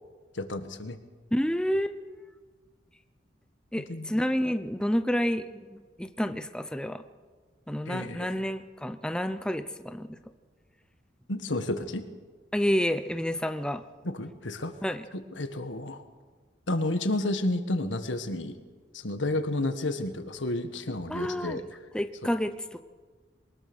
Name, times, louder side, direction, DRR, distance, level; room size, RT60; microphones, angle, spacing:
voice 1, 0.3-1.0 3.9-4.2 7.9-8.3 11.3-12.0 14.0-16.0 16.7-18.6 18.9-21.9 22.2-22.3, left 1 dB, 80° left, 8 dB, 1.7 m, -31 dB
voice 2, 1.3-2.0 3.7-7.0 7.7-10.2 12.5-13.8 14.8-15.0 21.1-21.6 21.9-22.8, equal, 5° left, 9 dB, 0.7 m, -29 dB
23.0 x 20.0 x 6.3 m, 1.4 s
head